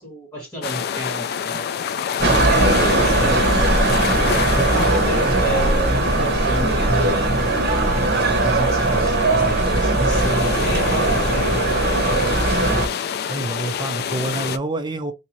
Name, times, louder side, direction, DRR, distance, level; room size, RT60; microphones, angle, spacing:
voice 1, 0.0-3.6 4.5-7.3 7.8-11.6, right 1 dB, 15° left, 2.0 m, -31 dB
sound 1, 0.6-14.6, left 7 dB, 50° left, 0.3 m, -28 dB
sound 2, 2.2-12.9, right 2 dB, 55° right, 1.0 m, -19 dB
voice 2, 13.3-15.1, right 2 dB, 20° right, 0.5 m, -27 dB
3.6 x 2.7 x 2.9 m
head